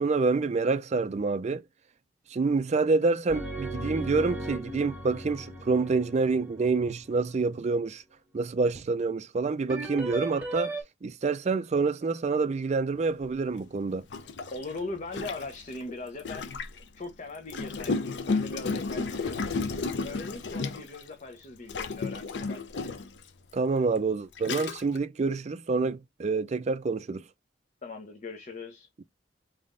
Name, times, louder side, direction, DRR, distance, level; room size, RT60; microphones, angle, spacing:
voice 1, 0.0-1.6 2.3-8.0 8.3-10.8 11.0-14.1 23.5-27.2, right 4 dB, 40° right, 0.4 m, -27 dB
sound 1, 3.3-7.3 9.7-10.8, right 2 dB, 10° right, 1.3 m, -37 dB
Gurgling, 13.2-13.3 14.1-16.8 17.5-21.1 21.7-23.2 23.9-24.0 24.4-25.0, left 4 dB, 85° left, 0.6 m, -33 dB
voice 2, 14.5-19.5 20.0-22.9 27.8-28.9, left 3 dB, 45° left, 0.8 m, -40 dB
4.1 x 3.6 x 2.5 m
head